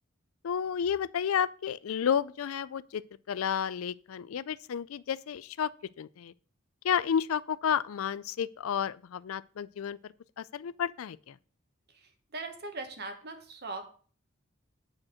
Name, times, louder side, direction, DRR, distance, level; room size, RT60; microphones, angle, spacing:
voice 1, 0.4-5.7 6.0-6.3 6.8-11.4, left 8 dB, 90° left, 0.4 m, -31 dB
voice 2, 11.9-13.9, right 3 dB, 55° right, 1.5 m, -40 dB
8.7 x 4.5 x 6.3 m
head